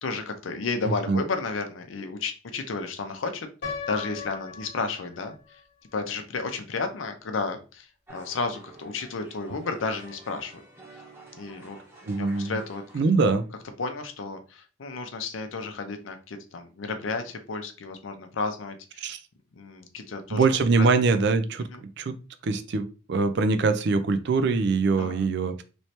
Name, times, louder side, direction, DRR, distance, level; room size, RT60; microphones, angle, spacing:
voice 1, 0.0-5.6 5.9-10.6 10.9-11.0 11.3-11.8 12.2-12.8 13.2-13.3 13.8-19.1 19.6-20.9 21.7-21.8 25.0-25.3, left 4 dB, 80° left, 6 dB, 0.6 m, -32 dB
Piano, 3.6-5.6, left 5 dB, 55° left, 1.1 m, -37 dB
sound 1, 8.1-13.4, right 1 dB, 10° right, 0.8 m, -50 dB
voice 2, 12.1-12.6 12.9-13.4 19.0-19.2 20.3-21.7 22.0-22.2 22.4-25.6, right 4 dB, 60° right, 10 dB, 0.4 m, -23 dB
3.1 x 3.1 x 2.8 m, 0.34 s
head